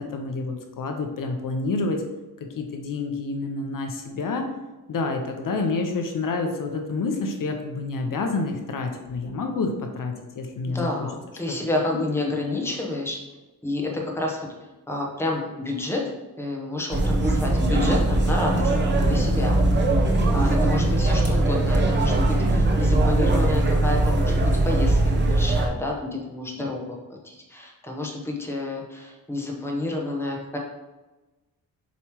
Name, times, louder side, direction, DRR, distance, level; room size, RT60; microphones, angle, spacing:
voice 1, 0.0-2.0 2.6-4.5 4.9-11.1 11.5-11.6 11.9-12.0 19.3-19.5 20.0-20.7, left 3 dB, 60° left, 4 dB, 0.7 m, -29 dB
voice 2, 10.7-13.2 13.6-14.5 14.9-16.0 16.4-19.6 20.3-30.6, left 2 dB, 5° left, -1 dB, 0.8 m, -29 dB
sound 1, 16.9-25.7, right 2 dB, 30° right, 0.8 m, -21 dB
7.0 x 3.1 x 4.6 m, 1.1 s
wide cardioid pair, 155°, 37 cm